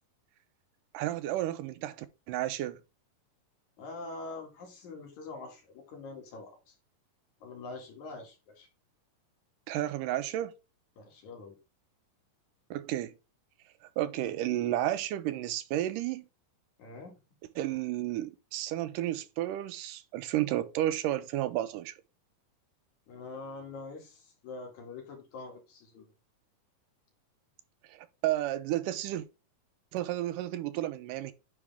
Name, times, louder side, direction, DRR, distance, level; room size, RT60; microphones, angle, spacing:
voice 1, 0.9-2.8 9.7-10.5 12.7-13.1 14.0-16.3 17.6-21.9 27.9-29.3 29.9-31.3, right 13 dB, 90° right, 2.2 m, -32 dB
voice 2, 3.8-6.8 7.4-8.7 11.0-11.6 16.8-17.1 23.1-26.0, left 3 dB, 65° left, 3.2 m, -44 dB
9.6 x 3.5 x 3.4 m
omnidirectional pair, 3.7 m